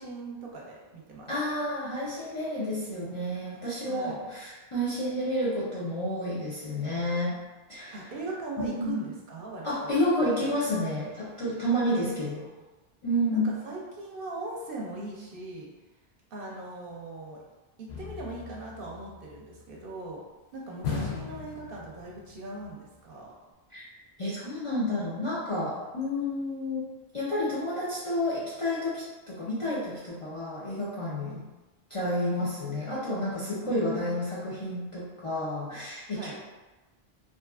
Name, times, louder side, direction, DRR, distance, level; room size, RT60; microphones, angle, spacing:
voice 1, 0.0-1.3 3.9-4.3 7.9-10.0 12.4-12.5 13.3-15.7 16.3-17.4 17.8-20.2 20.5-23.3 33.6-34.1 36.1-36.4, right 2 dB, 65° right, -3 dB, 0.7 m, -39 dB
voice 2, 1.3-7.4 7.7-8.0 8.6-8.9 9.6-12.4 13.0-13.5 23.7-23.9 24.2-26.9 27.1-31.5 31.9-36.4, left 1 dB, 45° left, -8 dB, 0.4 m, -30 dB
sound 1, 17.9-19.6 20.8-22.4 22.6-22.7, left 5 dB, 80° left, 0.8 m, -37 dB
2.7 x 2.3 x 2.3 m, 1.2 s
omnidirectional pair, 1.1 m